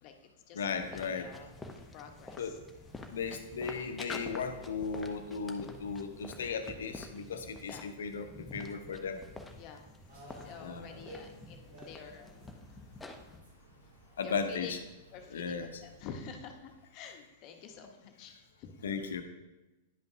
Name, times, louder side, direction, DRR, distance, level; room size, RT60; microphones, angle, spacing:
voice 1, 0.0-2.6 7.7-7.9 9.5-9.9 10.3-12.3 14.2-14.7 15.1-18.8, left 6 dB, 45° left, 5 dB, 1.0 m, -49 dB
voice 2, 0.5-1.3 2.4-2.5 3.1-9.2 10.6-10.9 14.2-14.7 15.3-15.8 18.8-19.2, left 5 dB, 75° left, 8 dB, 0.8 m, -36 dB
sound 1, 0.6-13.4, left 2 dB, 10° left, 0.8 m, -48 dB
sound 2, 10.1-16.8, equal, 80° right, 2.5 m, -55 dB
10.5 x 5.3 x 2.7 m, 1.1 s
hypercardioid pair, 105°, 0 cm